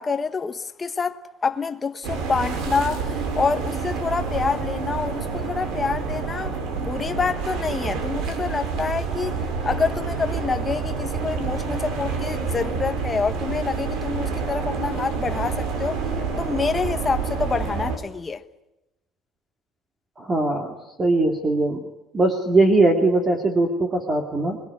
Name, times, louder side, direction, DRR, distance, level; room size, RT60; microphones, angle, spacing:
voice 1, 0.0-6.5 6.8-9.3 9.6-16.0 16.4-18.4, left 5 dB, 20° left, 1.1 m, -27 dB
sound 1, 2.0-18.0, right 5 dB, 70° right, 5.4 m, -28 dB
voice 2, 20.2-21.9 22.1-24.6, right 2 dB, 20° right, 2.5 m, -20 dB
25.5 x 22.0 x 9.7 m
cardioid pair, 170°, 0 cm